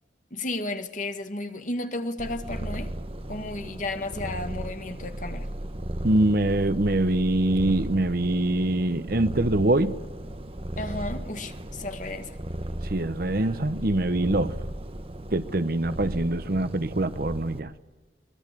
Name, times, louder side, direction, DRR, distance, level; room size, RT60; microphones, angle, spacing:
voice 1, 0.3-2.9 3.3-5.5 10.8-12.4, left 2 dB, 45° left, 1.9 m, -33 dB
Purr, 2.2-17.6, right 1 dB, 30° right, 1.2 m, -36 dB
voice 2, 6.0-10.0 12.8-14.5 15.3-17.7, right 1 dB, 55° right, 1.0 m, -24 dB
24.0 x 20.0 x 8.4 m
head